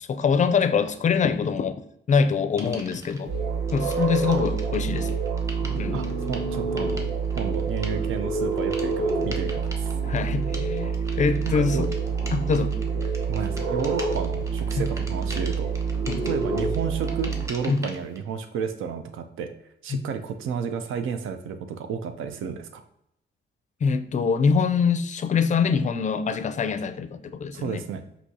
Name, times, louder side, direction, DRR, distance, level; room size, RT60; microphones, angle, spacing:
voice 1, 0.1-1.8 2.1-3.3 3.7-5.1 5.8-6.0 10.1-11.9 12.3-12.8 14.8-14.9 16.1-16.3 17.7-17.8 19.9-20.0 23.8-27.8, left 5 dB, 35° left, 0.4 m, -24 dB
sound 1, 2.6-3.2 3.7-18.2, equal, 15° right, 0.8 m, -43 dB
sound 2, 3.3-17.5, right 5 dB, 60° right, 1.7 m, -27 dB
voice 2, 5.9-9.9 11.5-11.9 13.3-15.7 16.2-19.5 19.8-22.8 27.5-28.0, right 6 dB, 85° right, 0.5 m, -32 dB
6.0 x 2.7 x 2.7 m
cardioid pair, 110°, 20 cm